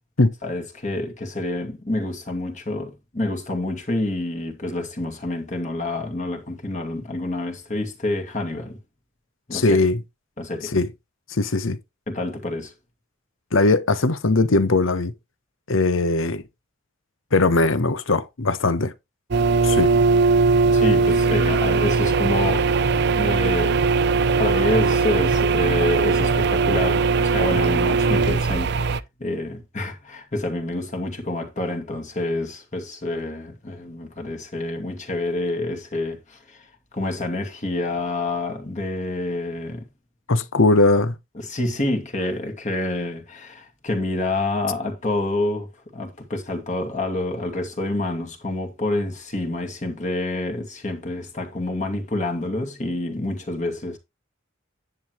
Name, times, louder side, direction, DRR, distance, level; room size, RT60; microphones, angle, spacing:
voice 1, 0.4-8.8 9.5-9.9 10.4-10.7 12.1-12.7 20.7-22.7 23.1-23.8 24.4-36.7 36.9-39.8 41.4-54.0, left 2 dB, 35° left, 2.3 m, -28 dB
voice 2, 9.5-10.0 10.6-10.9 11.3-11.8 13.5-15.1 15.7-16.4 17.3-18.9 19.6-19.9 40.3-41.1, left 2 dB, 70° left, 1.0 m, -19 dB
sound 1, 19.3-29.0, right 4 dB, 55° right, 0.5 m, -19 dB
10.5 x 7.8 x 3.0 m
head